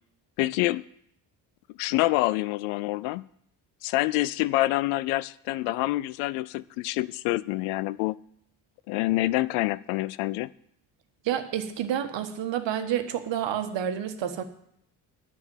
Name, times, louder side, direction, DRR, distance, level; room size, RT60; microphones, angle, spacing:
voice 1, 0.4-0.8 1.8-3.2 3.8-8.2 8.9-10.5, left 18 dB, 80° left, 19 dB, 0.6 m, -26 dB
voice 2, 11.2-14.4, right 9 dB, 60° right, 8 dB, 1.5 m, -29 dB
9.7 x 7.1 x 9.3 m, 0.71 s
hypercardioid pair, 55°, 48 cm